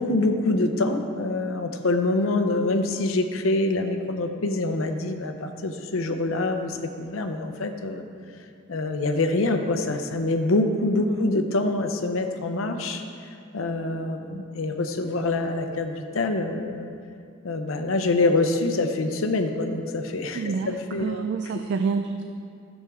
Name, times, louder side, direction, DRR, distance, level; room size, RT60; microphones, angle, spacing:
voice 1, 0.0-8.0 8.7-13.0 13.5-16.9 17.4-21.3 21.5-21.6, left 2 dB, 70° left, 6 dB, 0.7 m, -25 dB
voice 2, 20.4-22.2, right 5 dB, 55° right, 7 dB, 0.3 m, -28 dB
11.5 x 7.3 x 3.5 m, 2.4 s
head